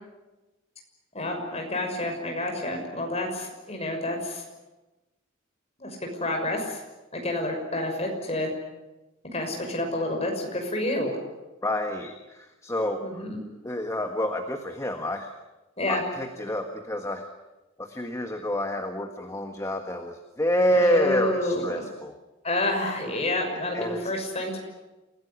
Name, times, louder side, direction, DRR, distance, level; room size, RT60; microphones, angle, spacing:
voice 1, 1.1-4.4 5.8-6.8 7.1-8.5 9.3-11.2 13.0-13.4 15.8-16.0 20.7-21.9 22.4-24.6, left 1 dB, 30° left, 3 dB, 6.1 m, -29 dB
voice 2, 11.6-13.3 13.6-15.3 15.9-17.3 17.8-22.2 23.7-24.1, left 1 dB, 15° left, 5 dB, 1.5 m, -28 dB
28.5 x 16.5 x 10.0 m, 1.1 s
head